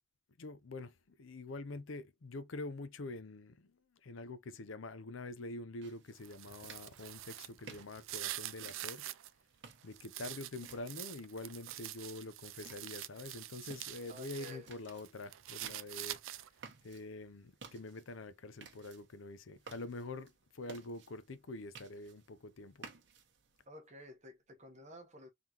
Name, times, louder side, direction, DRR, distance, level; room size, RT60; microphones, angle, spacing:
voice 1, 0.4-9.1 9.8-16.2 16.8-22.9, left 2 dB, 70° left, 0.6 m, -46 dB
sound 1, 5.8-23.6, right 5 dB, 60° right, 1.1 m, -58 dB
sound 2, 6.1-9.3 9.7-14.6 14.9-16.7, right 14 dB, 75° right, 0.4 m, -46 dB
voice 2, 14.1-14.7 23.7-25.3, equal, 35° right, 1.1 m, -52 dB
3.8 x 3.7 x 2.9 m
head